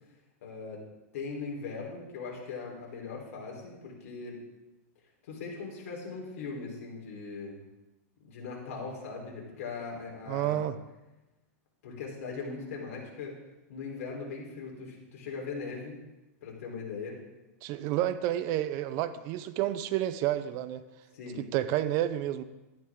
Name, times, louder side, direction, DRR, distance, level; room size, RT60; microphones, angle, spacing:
voice 1, 0.4-0.8 1.1-4.4 5.2-7.6 8.2-10.6 11.8-13.4 13.7-16.0 16.4-17.2 21.1-21.5, left 4 dB, 70° left, -1 dB, 3.9 m, -39 dB
voice 2, 10.3-10.8 17.6-20.8 21.4-22.4, right 13 dB, 40° right, 13 dB, 0.6 m, -30 dB
12.5 x 10.0 x 3.7 m, 1.0 s
supercardioid pair, 155°, 8 cm